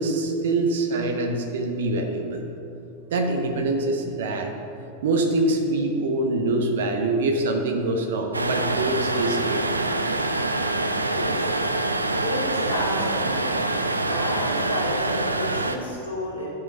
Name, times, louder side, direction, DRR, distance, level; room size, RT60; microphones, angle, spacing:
voice 1, 0.0-2.4 3.1-4.5 5.0-9.7, right 2 dB, 60° right, 4 dB, 1.1 m, -24 dB
sound 1, 8.3-15.8, right 2 dB, 80° right, 0.5 m, -25 dB
voice 2, 12.1-13.5 14.1-16.5, equal, 75° left, -9 dB, 2.0 m, -31 dB
11.0 x 5.7 x 5.4 m, 2.7 s
figure-of-eight pair, 90°, 0 cm